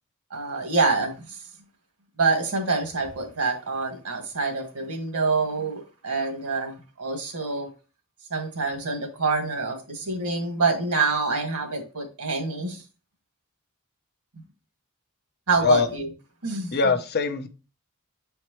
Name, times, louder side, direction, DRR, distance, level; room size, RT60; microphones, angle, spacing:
voice 1, 0.3-1.4 2.2-7.7 8.3-12.8 15.5-16.1 16.4-16.7, right 4 dB, 85° right, 3 dB, 1.6 m, -26 dB
voice 2, 16.7-17.5, left 5 dB, 45° left, 8 dB, 0.6 m, -22 dB
7.2 x 4.5 x 3.0 m, 0.34 s
head